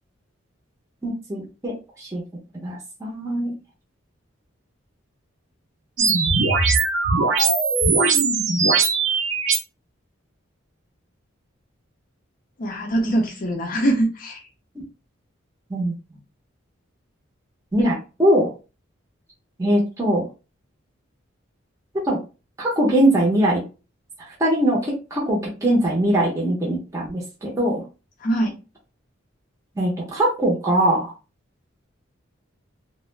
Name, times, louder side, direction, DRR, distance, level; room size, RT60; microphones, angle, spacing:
voice 1, 1.0-2.2 2.5-3.5 15.7-15.9 17.7-18.5 19.6-20.3 22.0-22.2 22.6-23.6 24.2-27.8 29.8-31.1, right 1 dB, 15° right, -3 dB, 0.6 m, -21 dB
sound 1, 6.0-9.6, right 4 dB, 75° right, 0.6 m, -19 dB
voice 2, 12.6-14.4 28.2-28.5, right 1 dB, 40° left, 1 dB, 0.4 m, -22 dB
2.3 x 2.0 x 3.1 m, 0.32 s
head